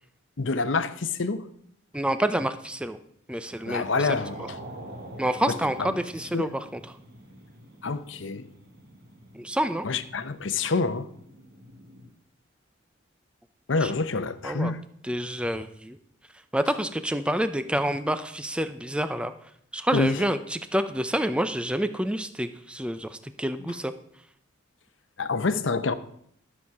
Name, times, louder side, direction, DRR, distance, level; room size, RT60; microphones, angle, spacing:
voice 1, 0.4-1.5 3.7-4.6 5.5-6.0 6.3-6.5 7.8-8.5 9.8-11.1 13.7-14.8 19.9-20.2 23.6-23.8 25.2-25.9, left 3 dB, 70° left, 0.8 m, -27 dB
voice 2, 1.9-3.0 3.3-3.8 5.2-6.5 9.4-9.9 13.8-13.9 14.4-14.7 15.1-16.0 16.5-19.3 19.7-23.9, right 1 dB, 5° right, 0.5 m, -28 dB
sound 1, 3.4-12.1, right 1 dB, 50° right, 1.6 m, -46 dB
12.5 x 7.3 x 4.7 m
head